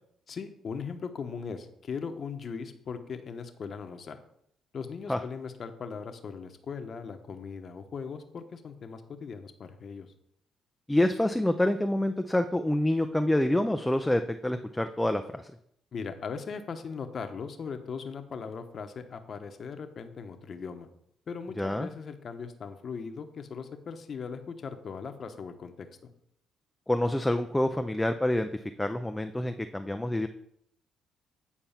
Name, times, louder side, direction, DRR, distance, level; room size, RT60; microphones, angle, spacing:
voice 1, 0.3-4.2 4.7-10.1 15.9-20.9 21.3-26.1, left 5 dB, 50° left, 7 dB, 1.0 m, -39 dB
voice 2, 10.9-15.5 21.6-21.9 26.9-28.5 28.8-30.3, left 1 dB, 10° left, 7 dB, 0.5 m, -27 dB
8.8 x 4.5 x 5.7 m, 0.72 s
cardioid pair, 80°, 0 cm